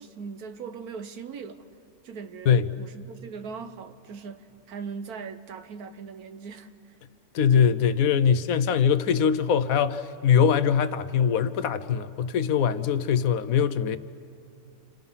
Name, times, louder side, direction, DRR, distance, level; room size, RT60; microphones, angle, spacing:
voice 1, 0.0-1.7 2.0-7.0, right 5 dB, 80° right, 1.5 m, -40 dB
voice 2, 7.3-14.0, left 7 dB, 70° left, 1.1 m, -22 dB
29.0 x 27.0 x 5.6 m
omnidirectional pair, 1.6 m